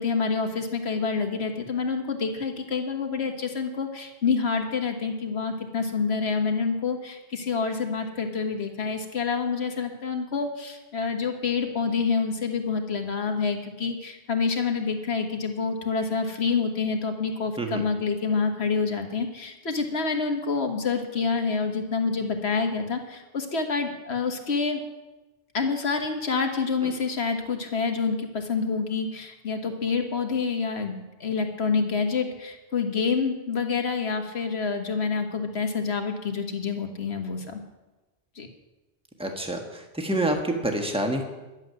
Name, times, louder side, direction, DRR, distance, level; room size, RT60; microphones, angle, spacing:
voice 1, 0.0-24.8 25.5-37.6 38.4-38.5, left 5 dB, 90° left, 4 dB, 1.7 m, -27 dB
voice 2, 39.2-41.2, right 1 dB, 5° right, 3 dB, 1.4 m, -27 dB
11.5 x 7.3 x 9.3 m, 1.1 s
omnidirectional pair, 1.1 m